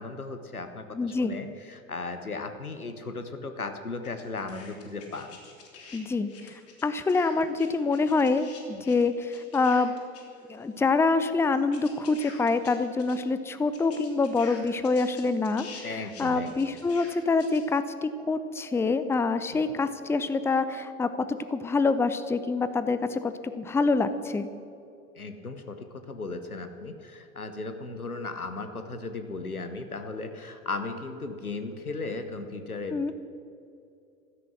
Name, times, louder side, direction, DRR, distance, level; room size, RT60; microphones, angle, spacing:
voice 1, 0.0-5.4 8.7-8.8 15.8-16.8 19.5-19.6 25.2-33.1, left 3 dB, 90° left, 8 dB, 1.1 m, -36 dB
voice 2, 0.9-1.3 5.9-8.5 8.8-9.9 10.5-24.5 32.9-33.1, left 3 dB, 5° left, 12 dB, 0.6 m, -26 dB
sound 1, 4.0-6.0 6.3-10.6 10.9-11.0 11.5-13.2 13.4-13.5 13.7-17.6, left 5 dB, 35° left, 3.2 m, -47 dB
15.5 x 13.0 x 6.2 m, 2.6 s
figure-of-eight pair, 85°, 43 cm